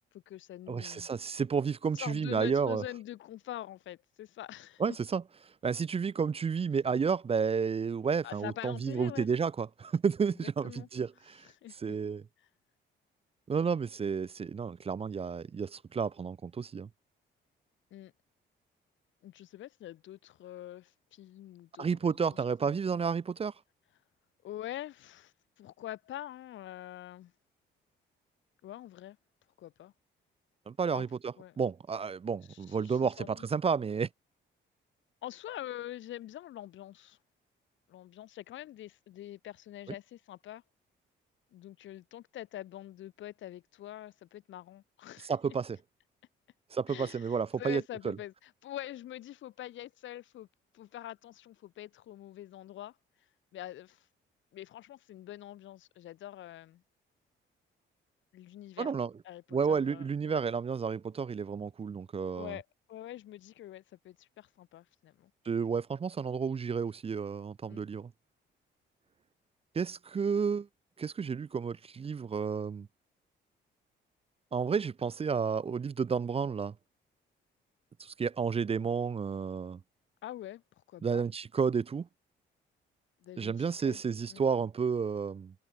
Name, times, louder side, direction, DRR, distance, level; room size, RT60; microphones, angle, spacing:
voice 1, 0.0-1.1 1.9-4.8 8.2-9.3 10.4-10.9 11.6-12.0 17.9-18.1 19.2-22.8 24.4-27.3 28.6-29.2 29.6-29.9 30.9-31.0 31.4-31.6 32.5-33.4 35.2-37.2 37.9-40.6 41.5-45.4 46.9-50.5 50.7-52.9 53.5-54.1 54.5-56.8 58.3-58.9 59.2-60.4 62.3-65.3 67.7-67.8 80.2-80.6 80.9-81.2 83.2-84.0 84.3-84.4, left 13 dB, 75° left, 1.1 m, -45 dB
voice 2, 0.7-2.8 4.8-5.2 5.6-11.5 11.8-12.2 13.5-16.9 21.8-23.5 30.7-34.1 45.2-45.8 46.7-48.2 58.8-59.1 59.5-62.6 65.5-68.1 69.7-70.7 71.0-72.9 74.5-76.7 78.0-79.8 81.0-82.1 83.4-85.5, right 6 dB, 30° right, 0.5 m, -31 dB
cardioid pair, 90°, 20 cm